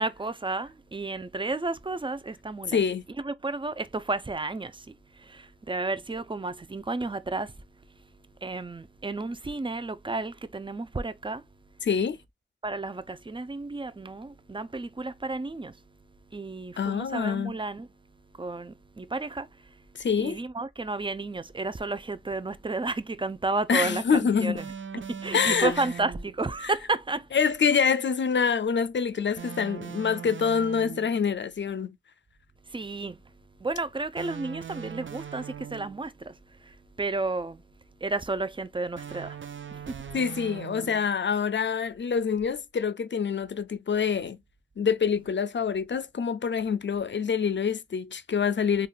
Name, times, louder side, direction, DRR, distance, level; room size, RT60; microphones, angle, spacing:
voice 1, 0.0-2.8 3.2-7.5 8.4-11.4 12.6-15.7 16.3-17.9 18.4-19.5 20.2-24.7 25.0-27.3 32.7-33.2 33.6-37.6 38.0-39.4 39.7-40.0, right 3 dB, 25° right, 0.4 m, -32 dB
voice 2, 2.7-3.0 11.8-12.2 16.8-17.5 20.0-20.4 23.7-24.6 25.3-25.7 27.3-32.0 40.1-44.4 44.8-48.9, left 6 dB, 70° left, 0.4 m, -26 dB
sound 1, 24.6-26.4 29.4-31.2 34.1-36.1 39.0-41.2, right 8 dB, 85° right, 0.4 m, -40 dB
3.6 x 2.3 x 2.3 m
wide cardioid pair, 45°, 19 cm